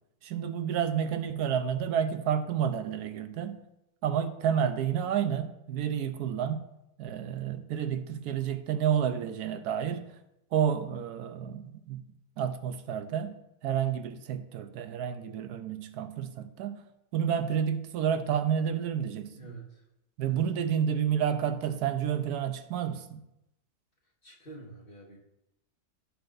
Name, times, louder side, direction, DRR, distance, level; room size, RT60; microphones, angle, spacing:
voice 1, 0.2-3.6 4.0-6.6 7.0-10.2 10.5-12.1 12.4-13.4 13.6-16.8 17.1-19.3 20.2-23.2, right 8 dB, 80° right, 1.1 m, -30 dB
voice 2, 19.3-19.8 20.3-20.7 24.0-25.2, right 3 dB, 35° left, 1.7 m, -48 dB
15.0 x 5.8 x 2.5 m
omnidirectional pair, 1.7 m